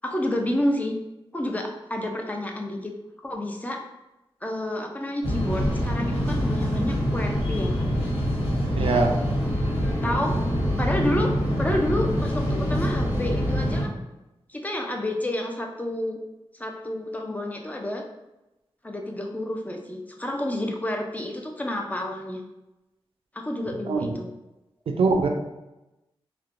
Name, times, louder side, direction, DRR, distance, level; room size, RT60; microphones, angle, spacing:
voice 1, 0.0-0.9 1.3-2.9 3.2-3.8 4.4-8.0 8.8-9.1 10.0-10.4 10.8-13.9 14.5-16.2 16.6-18.0 18.8-22.4 23.3-24.3, left 1 dB, 15° left, 2 dB, 0.4 m, -29 dB
sound 1, 5.2-13.8, equal, 80° left, 1.3 m, -25 dB
voice 2, 8.7-9.1 23.9-24.1 24.9-25.3, right 4 dB, 75° right, 4 dB, 0.4 m, -22 dB
3.0 x 2.1 x 2.5 m, 0.98 s
wide cardioid pair, 85°, 10 cm